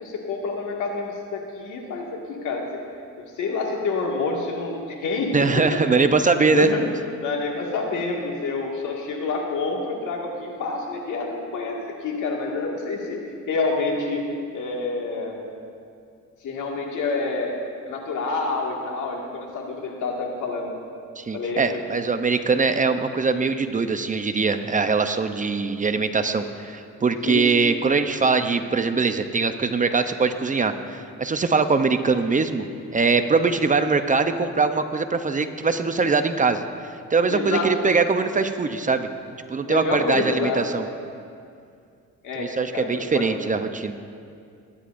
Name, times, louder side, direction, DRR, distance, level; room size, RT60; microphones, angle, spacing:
voice 1, 0.0-2.7 3.4-5.8 6.5-6.8 7.2-14.2 14.5-15.4 16.4-17.6 17.8-20.8 21.3-21.8 27.2-27.5 37.3-37.7 39.7-40.6 42.2-42.5 42.7-43.3, left 3 dB, 75° left, -1 dB, 2.0 m, -28 dB
voice 2, 5.3-6.7 21.2-32.7 32.9-36.6 37.1-39.1 39.5-40.9 42.3-43.9, right 4 dB, 25° right, 8 dB, 0.6 m, -22 dB
22.0 x 10.0 x 2.6 m, 2.4 s
cardioid pair, 90°, 30 cm